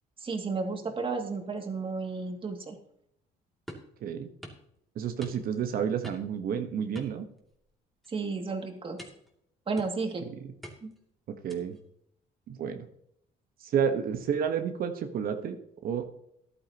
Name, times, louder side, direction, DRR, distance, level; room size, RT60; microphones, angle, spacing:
voice 1, 0.2-2.8 8.1-9.0 9.7-10.3 10.8-10.9, right 4 dB, 30° right, 4 dB, 2.3 m, -33 dB
sound 1, 3.7-3.9 4.4-4.7 5.2-5.6 6.0-6.4 6.9-7.7 8.0-8.3 9.0-9.3 9.8-10.2 10.6-11.0 11.5-11.8, equal, ahead, 2.6 m, -46 dB
voice 2, 4.0-4.3 4.9-7.2 10.4-10.5 11.4-11.8 12.5-12.9 13.6-15.6 15.8-16.0, right 7 dB, 60° right, 6 dB, 1.2 m, -30 dB
14.0 x 11.5 x 2.9 m, 0.73 s
cardioid pair, 110°, 17 cm